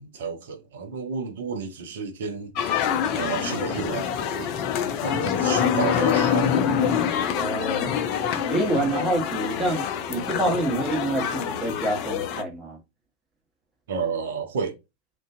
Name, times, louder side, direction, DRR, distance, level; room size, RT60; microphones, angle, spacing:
voice 1, 0.0-4.6 5.0-6.5 13.9-14.8, right 5 dB, 60° right, 0.6 m, -31 dB
sound 1, 2.5-12.4, left 8 dB, 40° left, 0.4 m, -25 dB
voice 2, 7.3-7.9 8.5-12.8, right 1 dB, 15° right, 1.0 m, -27 dB
2.4 x 2.2 x 2.4 m
figure-of-eight pair, 90°, 0 cm